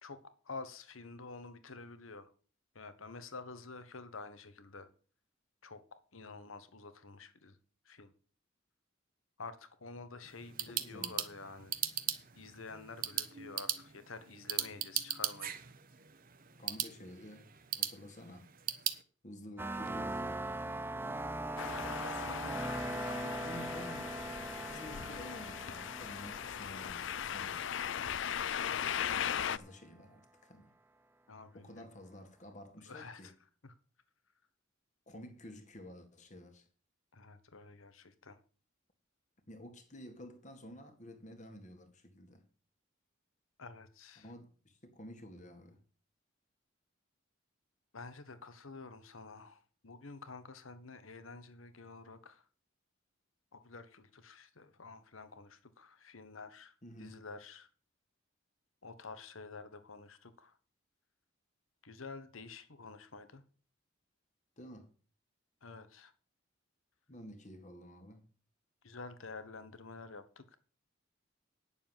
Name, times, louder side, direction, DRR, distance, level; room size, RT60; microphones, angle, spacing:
voice 1, 0.0-2.3 2.7-4.9 5.6-7.6 7.8-8.1 9.4-11.7 12.3-15.5 31.3-31.9 32.9-33.3 33.6-33.7 37.1-38.4 43.6-44.3 47.9-52.4 53.5-57.7 58.8-60.6 61.8-63.4 65.6-66.1 68.8-70.6, left 3 dB, 85° left, 1.3 m, -49 dB
sound 1, 10.2-19.0, right 11 dB, 45° right, 1.0 m, -39 dB
voice 2, 10.8-11.2 16.6-18.5 19.2-20.5 22.0-24.2 24.7-27.6 29.0-30.7 31.5-33.3 35.1-36.7 39.5-42.4 44.2-45.8 56.8-57.2 64.6-64.9 67.1-68.3, left 1 dB, 35° left, 1.9 m, -51 dB
sound 2, 19.6-28.2, right 2 dB, 10° right, 0.4 m, -41 dB
sound 3, 21.6-29.6, left 8 dB, 65° left, 0.5 m, -38 dB
9.8 x 7.1 x 7.4 m
head